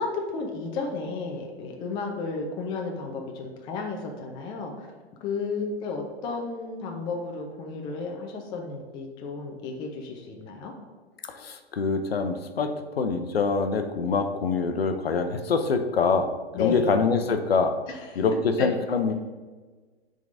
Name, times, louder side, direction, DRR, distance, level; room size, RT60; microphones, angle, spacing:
voice 1, 0.0-4.9 5.2-10.7 16.5-16.9 17.9-18.2 18.6-18.7, left 4 dB, 15° left, 2 dB, 0.5 m, -33 dB
voice 2, 11.4-17.7 18.2-19.1, left 4 dB, 65° left, 7 dB, 0.7 m, -25 dB
10.0 x 3.8 x 2.6 m, 1.4 s
figure-of-eight pair, 115°, 32 cm